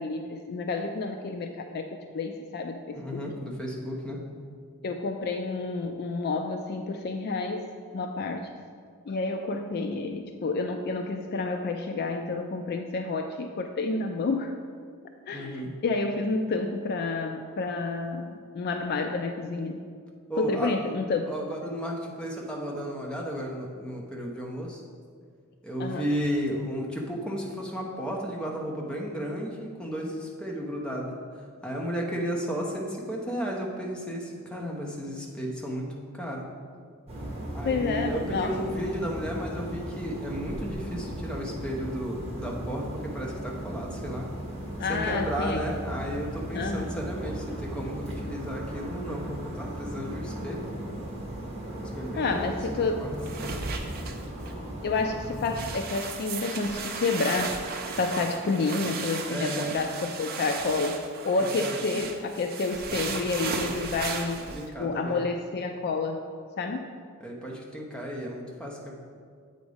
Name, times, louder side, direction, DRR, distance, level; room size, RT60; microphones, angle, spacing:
voice 1, 0.0-1.9 2.1-3.2 4.8-7.7 7.9-8.5 9.1-14.6 15.3-19.8 20.4-21.3 25.8-26.1 37.6-38.7 44.8-45.6 46.5-46.9 52.2-53.0 54.8-57.6 57.9-64.5 64.8-66.2 66.6-67.0, left 3 dB, 45° left, 5 dB, 0.3 m, -29 dB
voice 2, 2.9-4.2 15.3-15.7 20.3-20.8 21.3-24.8 25.6-31.2 31.6-35.9 36.1-36.5 37.5-44.3 44.9-50.7 51.7-52.6 53.0-53.1 59.3-59.8 61.5-61.8 64.5-65.3 67.2-68.9, equal, 5° left, -2 dB, 0.8 m, -33 dB
sound 1, 37.1-55.7, right 1 dB, 30° right, 1.2 m, -37 dB
sound 2, 53.2-54.5 55.0-55.1 55.4-64.6, right 4 dB, 45° right, 0.6 m, -35 dB
8.0 x 4.0 x 4.9 m, 2.1 s
head